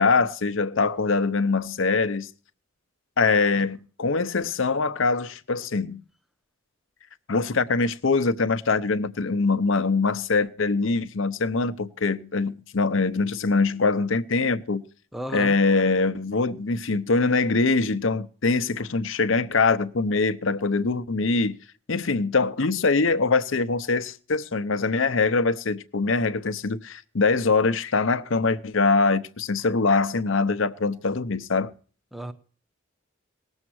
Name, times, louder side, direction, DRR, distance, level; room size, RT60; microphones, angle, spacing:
voice 1, 0.0-2.3 3.2-6.0 7.3-14.8 15.3-21.6 21.9-31.7, left 4 dB, 65° left, 0.7 m, -23 dB
voice 2, 15.1-15.6 32.1-32.3, equal, ahead, 0.7 m, -33 dB
19.0 x 7.2 x 6.2 m
head